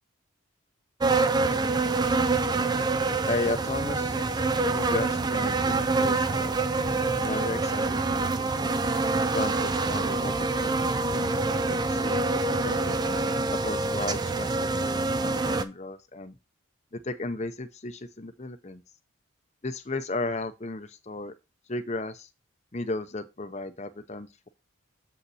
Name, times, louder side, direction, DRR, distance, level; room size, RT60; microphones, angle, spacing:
sound 1, 1.0-15.6, right 3 dB, 20° right, 0.4 m, -26 dB
voice 1, 3.3-4.4 4.7-6.6 7.2-8.8 9.3-10.3 10.6-13.0 13.6-16.4 16.9-18.8 19.6-21.3 21.7-22.3 22.7-24.5, left 2 dB, 30° left, 0.7 m, -35 dB
7.4 x 5.5 x 4.1 m
head